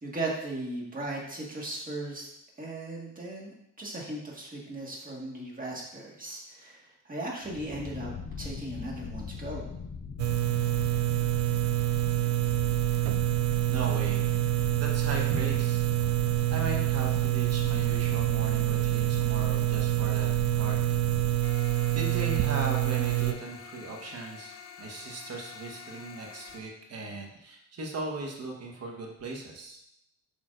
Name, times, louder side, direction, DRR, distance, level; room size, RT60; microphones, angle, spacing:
voice 1, 0.0-2.3 2.6-9.6, right 2 dB, 30° right, -2 dB, 1.8 m, -37 dB
sound 1, 7.4-21.4, left 6 dB, 30° left, 0.5 m, -40 dB
sound 2, 10.2-23.3, right 16 dB, 70° right, 0.5 m, -26 dB
voice 2, 13.7-14.3 14.7-15.8 16.5-20.3 20.5-20.8 21.3-21.6 21.9-29.8, right 2 dB, 55° right, 1 dB, 1.3 m, -38 dB
sound 3, 21.4-26.6, left 7 dB, 65° left, 1.0 m, -47 dB
6.4 x 5.7 x 2.6 m, 0.78 s
cardioid pair, 90°, 30 cm